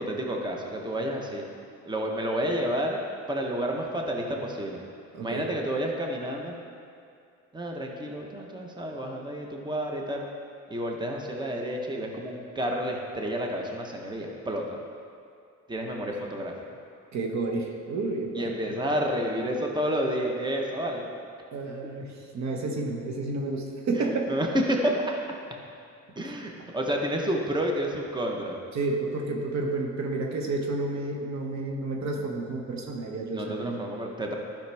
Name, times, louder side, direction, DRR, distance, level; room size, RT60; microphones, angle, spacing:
voice 1, 0.0-1.4 1.8-3.0 3.3-4.8 5.2-6.5 7.5-10.2 10.7-14.8 15.7-16.5 18.3-21.1 23.9-25.1 26.2-28.6 33.3-34.4, equal, 15° right, 0 dB, 1.0 m, -30 dB
voice 2, 5.1-5.4 17.1-18.5 21.5-24.3 28.7-33.8, right 3 dB, 65° right, 1 dB, 1.0 m, -30 dB
11.5 x 5.8 x 3.4 m, 2.4 s
cardioid pair, 90°, 30 cm